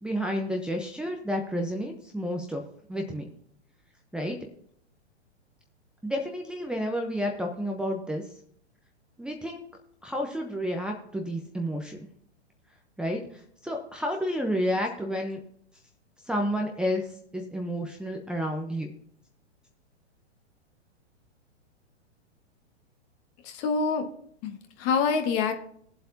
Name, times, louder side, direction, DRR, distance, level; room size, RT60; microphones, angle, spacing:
voice 1, 0.0-2.6 2.9-3.2 4.1-4.4 6.0-8.2 9.2-9.6 10.0-12.0 13.0-15.4 16.3-17.1 17.3-18.9, equal, ahead, -1 dB, 0.9 m, -30 dB
voice 2, 23.4-24.1 24.4-25.5, left 5 dB, 35° left, 5 dB, 1.8 m, -26 dB
20.0 x 7.8 x 2.8 m, 0.66 s
hypercardioid pair, 125°, 35 cm